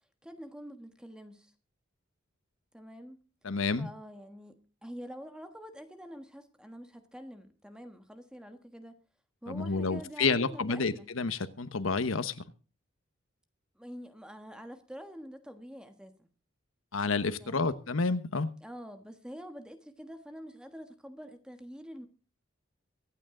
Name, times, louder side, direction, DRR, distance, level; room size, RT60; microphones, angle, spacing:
voice 1, 0.2-1.5 2.7-3.2 3.8-9.0 9.4-11.1 13.7-16.3 17.4-17.8 18.6-22.1, equal, 5° right, 7 dB, 1.3 m, -46 dB
voice 2, 3.4-3.9 9.5-12.4 16.9-18.5, left 4 dB, 90° left, 13 dB, 1.1 m, -30 dB
24.0 x 9.1 x 3.8 m, 0.34 s
head